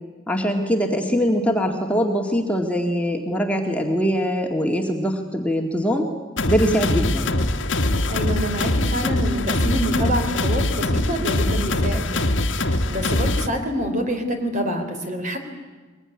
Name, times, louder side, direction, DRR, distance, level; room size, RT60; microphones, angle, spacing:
voice 1, 0.3-6.1 6.5-7.3, equal, 5° left, 1 dB, 2.0 m, -22 dB
sound 1, 6.4-13.5, left 1 dB, 70° left, 1.5 m, -22 dB
voice 2, 8.1-15.4, equal, 40° right, 5 dB, 3.7 m, -27 dB
22.5 x 22.0 x 9.9 m, 1.4 s
head